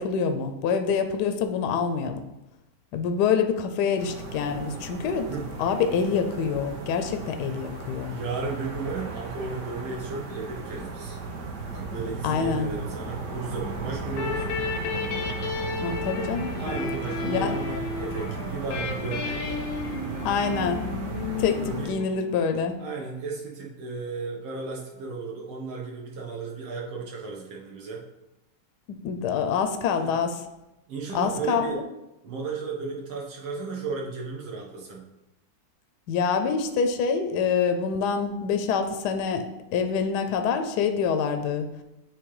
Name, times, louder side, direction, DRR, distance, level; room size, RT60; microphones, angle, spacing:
voice 1, 0.0-2.2 2.9-5.3 5.6-8.2 12.2-12.7 15.8-16.5 17.2-17.6 20.2-21.1 21.4-22.8 28.9-30.4 31.1-31.8 36.1-39.5 39.7-41.7, left 6 dB, 70° left, 7 dB, 1.0 m, -26 dB
sound 1, 4.0-21.9, right 3 dB, 50° right, 1.0 m, -35 dB
voice 2, 5.2-5.5 8.1-11.2 11.7-14.5 16.6-19.6 21.4-22.0 22.8-28.0 29.9-30.1 30.9-31.8 32.2-35.1, right 4 dB, 75° right, -2 dB, 2.0 m, -34 dB
sound 2, 14.1-22.6, left 5 dB, 90° left, 1.5 m, -33 dB
7.8 x 3.2 x 4.8 m, 0.95 s
omnidirectional pair, 2.2 m